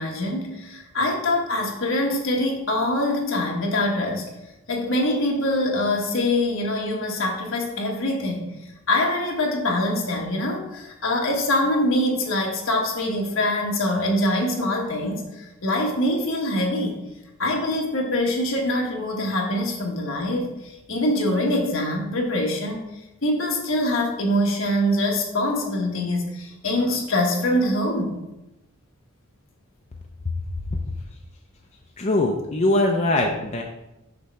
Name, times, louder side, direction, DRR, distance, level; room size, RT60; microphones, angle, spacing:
voice 1, 0.0-4.3 4.7-8.5 8.9-17.0 17.4-22.8 23.2-28.2, left 1 dB, 65° left, 0 dB, 1.3 m, -24 dB
voice 2, 32.0-33.6, left 2 dB, 30° left, 1 dB, 0.5 m, -21 dB
6.6 x 3.2 x 5.7 m, 0.93 s
head